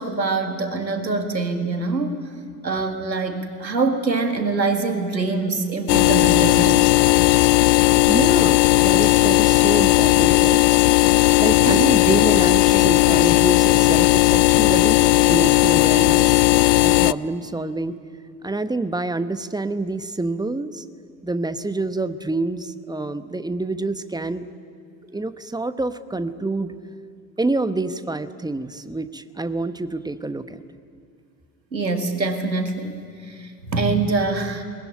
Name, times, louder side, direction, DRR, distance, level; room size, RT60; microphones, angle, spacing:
voice 1, 0.0-2.2 2.6-6.9 11.6-11.9 31.7-34.6, right 3 dB, 90° right, 7 dB, 1.9 m, -24 dB
sound 1, 5.9-17.1, left 19 dB, 70° left, 0.6 m, -16 dB
voice 2, 8.1-10.6 11.4-16.4 16.8-18.0 18.4-20.8 21.2-24.5 25.0-26.7 27.4-30.6, right 2 dB, 10° right, 12 dB, 1.1 m, -27 dB
21.0 x 21.0 x 10.0 m, 2.2 s
figure-of-eight pair, 65°, 50 cm